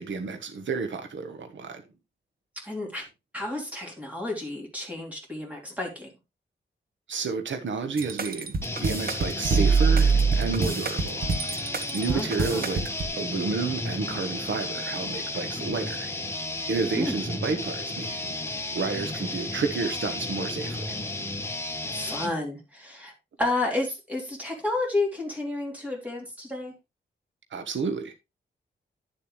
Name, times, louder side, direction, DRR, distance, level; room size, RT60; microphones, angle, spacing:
voice 1, 0.0-1.8 7.1-12.8 13.2-16.1 16.7-18.4 18.7-21.0 27.5-28.1, right 4 dB, 75° right, 1.3 m, -31 dB
voice 2, 2.6-3.1 3.3-6.1 12.1-12.6 17.0-17.2 21.9-23.1 23.4-26.7, left 2 dB, 5° right, 3.1 m, -31 dB
sound 1, 8.0-13.1, right 5 dB, 50° right, 1.0 m, -24 dB
sound 2, 8.6-22.3, left 2 dB, 10° left, 1.3 m, -33 dB
10.5 x 7.2 x 3.2 m
wide cardioid pair, 165°, 20 cm